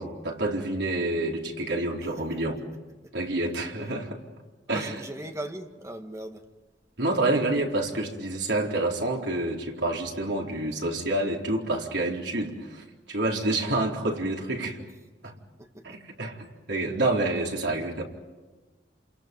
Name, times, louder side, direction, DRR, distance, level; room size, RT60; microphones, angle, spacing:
voice 1, 0.0-2.6 3.1-4.2 4.7-5.0 7.0-14.8 15.2-15.3 15.8-18.0, right 2 dB, 80° right, 4.1 m, -28 dB
voice 2, 4.7-6.5 15.2-15.3 15.6-16.0, right 1 dB, 15° right, 1.8 m, -39 dB
28.5 x 27.5 x 5.4 m
head